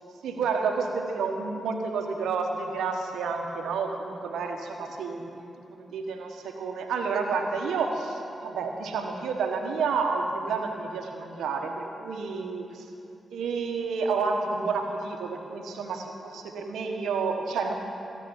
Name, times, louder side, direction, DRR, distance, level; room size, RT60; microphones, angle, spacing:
voice 1, 0.2-12.9 13.3-17.7, right 4 dB, 80° right, 3 dB, 1.3 m, -30 dB
17.0 x 7.6 x 8.9 m, 2.8 s
hypercardioid pair, 40°, 0 cm